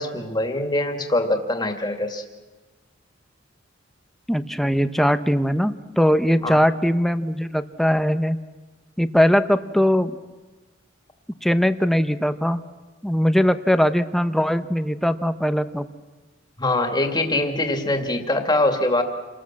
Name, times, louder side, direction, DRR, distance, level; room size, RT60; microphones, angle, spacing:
voice 1, 0.0-2.2 6.4-6.6 16.6-19.0, left 2 dB, 20° left, 4 dB, 2.4 m, -23 dB
voice 2, 4.3-8.4 9.0-10.2 11.4-12.6 13.0-15.9, equal, ahead, 10 dB, 0.9 m, -20 dB
28.5 x 20.0 x 7.6 m, 1.3 s
head